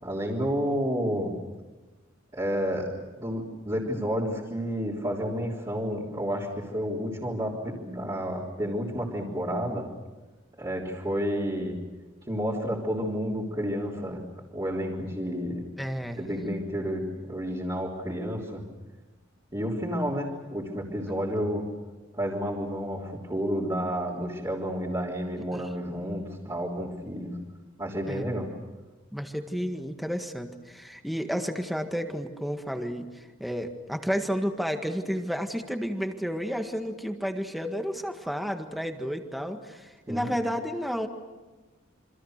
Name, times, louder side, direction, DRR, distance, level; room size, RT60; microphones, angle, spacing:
voice 1, 0.0-1.3 2.3-2.9 3.2-9.9 10.6-11.8 12.3-14.2 14.5-15.7 16.2-18.6 19.5-21.6 22.1-27.4 27.8-28.5 40.1-40.3, equal, 20° right, -7 dB, 3.6 m, -30 dB
voice 2, 15.8-16.2 25.5-25.7 28.1-28.3 29.1-41.1, equal, ahead, 5 dB, 1.7 m, -31 dB
28.5 x 26.0 x 6.6 m, 1.2 s
head